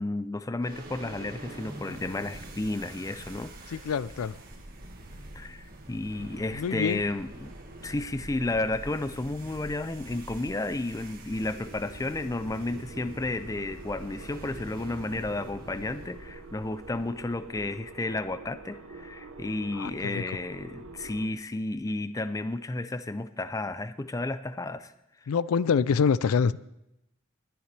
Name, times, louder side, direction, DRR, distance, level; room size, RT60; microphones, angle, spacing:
voice 1, 0.0-3.8 5.3-7.5 7.8-24.9, left 2 dB, 15° left, 12 dB, 0.4 m, -32 dB
sound 1, 0.6-18.0, right 1 dB, 45° right, 1.9 m, -45 dB
voice 2, 3.7-4.4 6.5-7.0 19.7-20.2 25.3-26.6, left 6 dB, 85° left, 19 dB, 0.4 m, -26 dB
sound 2, 10.9-21.3, right 3 dB, 85° right, 1.0 m, -47 dB
21.5 x 10.0 x 3.3 m, 0.85 s
head